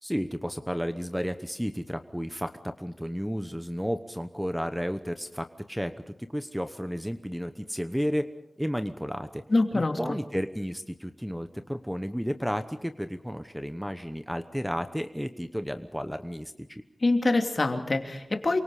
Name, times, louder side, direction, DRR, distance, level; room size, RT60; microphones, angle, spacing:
voice 1, 0.0-8.3 8.6-9.4 9.7-16.8, equal, ahead, 9 dB, 1.0 m, -32 dB
voice 2, 9.5-10.0 17.0-18.6, left 2 dB, 45° left, 4 dB, 2.8 m, -25 dB
28.0 x 24.5 x 5.0 m, 0.83 s
wide cardioid pair, 95°, 0 cm